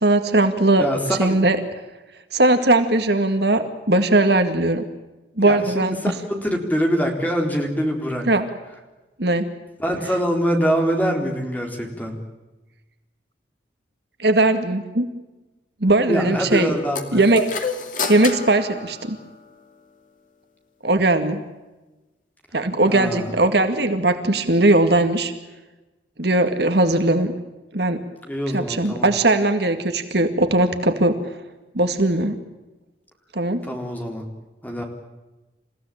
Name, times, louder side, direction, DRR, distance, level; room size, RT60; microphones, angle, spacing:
voice 1, 0.0-0.9 1.2-1.6 2.3-4.8 5.4-6.1 8.3-8.4 9.2-9.5 14.2-15.1 15.8-16.7 17.1-17.4 18.1-19.2 20.8-21.4 22.5-25.3 26.2-27.3 27.7-28.0 28.5-31.2 31.7-32.4 33.3-33.6, right 2 dB, 60° right, 8 dB, 2.2 m, -19 dB
voice 2, 0.8-1.4 5.4-8.2 9.8-12.2 16.1-17.3 22.9-23.3 28.2-29.1 33.6-34.2 34.6-34.8, equal, 10° left, 2 dB, 4.1 m, -24 dB
sound 1, 16.9-19.6, left 3 dB, 45° left, 2.6 m, -29 dB
29.0 x 16.0 x 8.9 m, 1.1 s
head